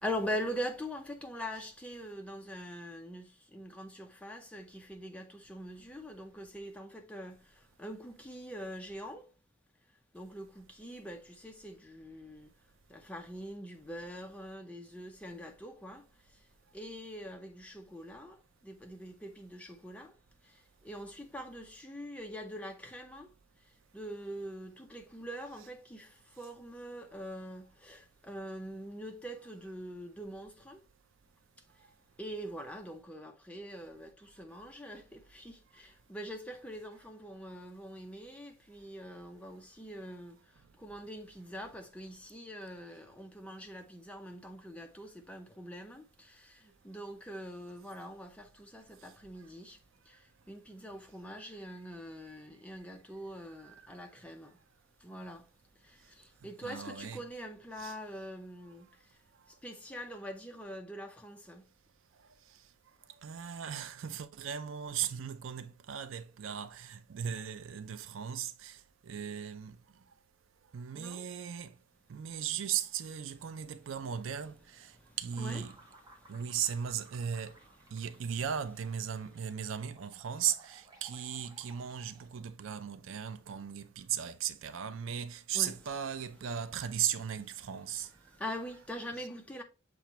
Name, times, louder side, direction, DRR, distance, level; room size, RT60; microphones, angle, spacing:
voice 1, 0.0-9.3 10.1-12.5 12.9-16.4 16.7-20.2 20.4-23.3 23.6-30.8 31.8-31.9 32.2-49.8 50.0-54.6 55.0-55.5 55.8-59.2 59.5-61.7 70.9-71.3 75.0-75.6 76.2-76.4 85.5-85.8 88.3-89.6, equal, 5° left, 0.5 m, -43 dB
voice 2, 56.6-57.2 57.8-58.0 63.2-69.8 70.7-71.7 72.1-75.7 76.3-77.6 77.9-88.1, right 8 dB, 70° right, 0.4 m, -37 dB
sound 1, 75.3-82.5, right 2 dB, 20° right, 0.8 m, -59 dB
6.8 x 2.5 x 3.0 m
head